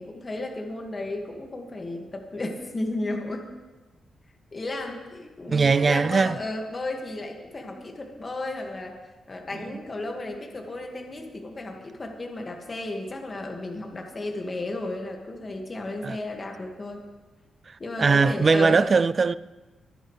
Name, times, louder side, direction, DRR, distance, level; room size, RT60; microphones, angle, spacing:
voice 1, 0.0-3.4 4.5-9.0 9.3-17.0 17.8-18.9, left 2 dB, 30° left, 1.9 m, -33 dB
voice 2, 5.5-6.4 9.5-9.8 16.0-16.2 17.7-19.3, right 4 dB, 35° right, 0.3 m, -21 dB
24.5 x 9.9 x 3.3 m
wide cardioid pair, 125°, 0 cm